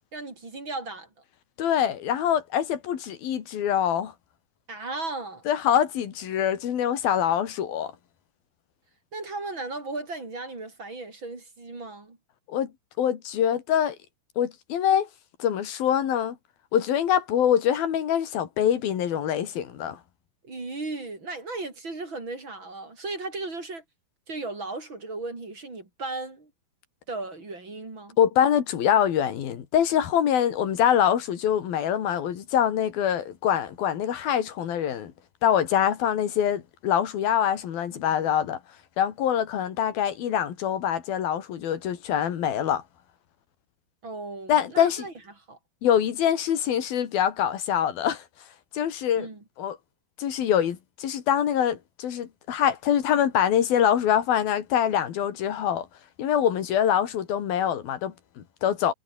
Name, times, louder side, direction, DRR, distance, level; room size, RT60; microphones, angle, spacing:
voice 1, 0.1-1.1 4.7-5.4 9.1-12.2 20.4-23.8 24.3-26.5 27.1-28.2 44.0-45.6 49.2-49.4, right 3 dB, 30° right, 5.1 m, -36 dB
voice 2, 1.6-4.1 5.5-7.9 12.5-12.7 13.0-14.0 14.4-15.1 15.4-16.4 16.7-20.0 28.2-35.1 35.4-38.6 39.0-42.8 44.5-45.1 45.8-48.2 48.7-49.3 49.6-49.8 50.2-55.9 56.2-58.9, left 9 dB, 85° left, 4.2 m, -24 dB
omnidirectional pair, 4.1 m